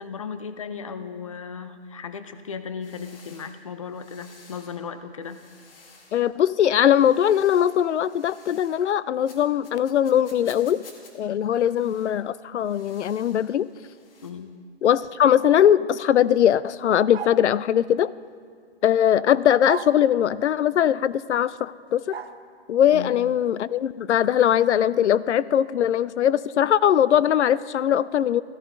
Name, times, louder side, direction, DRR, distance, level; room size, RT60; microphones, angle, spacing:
voice 1, 0.0-5.4 14.2-14.5 22.9-23.2, left 6 dB, 30° left, 11 dB, 0.4 m, -36 dB
sound 1, 2.8-4.8 5.2-6.3 6.8-8.9 9.2-11.1 11.5-12.2 12.6-14.3, left 4 dB, 55° left, 2.0 m, -53 dB
voice 2, 6.1-10.8 11.1-13.7 14.8-18.1 18.8-22.2 22.7-28.4, left 10 dB, 90° left, 19 dB, 0.5 m, -20 dB
sound 2, 17.1-17.5 19.7-20.0 22.1-22.4, right 7 dB, 65° right, 0.9 m, -34 dB
14.5 x 14.5 x 3.8 m, 2.2 s
hypercardioid pair, 165°, 33 cm